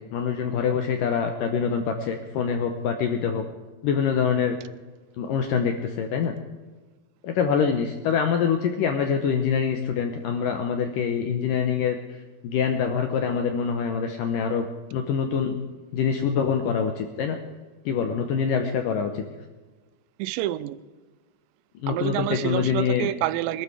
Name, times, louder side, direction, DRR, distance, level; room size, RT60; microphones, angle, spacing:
voice 1, 0.0-3.4 3.8-4.6 5.2-6.3 7.2-12.0 12.4-14.7 14.9-15.5 15.9-17.4 17.9-19.2 21.8-23.1, left 7 dB, 75° left, 5 dB, 2.0 m, -25 dB
voice 2, 20.2-20.8 21.9-23.6, right 14 dB, 85° right, 16 dB, 2.9 m, -27 dB
21.5 x 12.5 x 4.9 m, 1.3 s
omnidirectional pair, 5.0 m